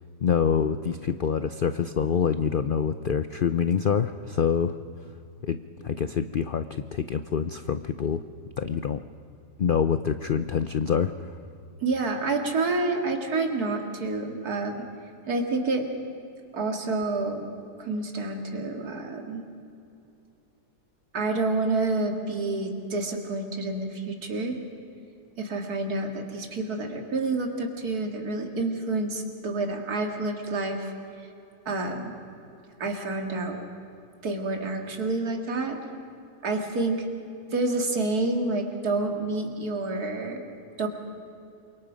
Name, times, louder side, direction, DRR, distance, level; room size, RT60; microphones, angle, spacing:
voice 1, 0.2-4.7 5.4-5.6 5.8-8.2 8.6-9.0 9.6-11.1, left 7 dB, 75° left, 11 dB, 0.4 m, -26 dB
voice 2, 11.8-14.9 15.3-15.9 16.5-17.5 17.8-19.5 21.1-24.6 25.4-30.9 31.7-32.1 32.8-33.6 34.2-35.8 36.4-37.1 37.5-40.4 40.8-40.9, right 3 dB, 70° right, 3 dB, 2.6 m, -28 dB
28.0 x 23.5 x 5.1 m, 2.7 s
omnidirectional pair, 1.7 m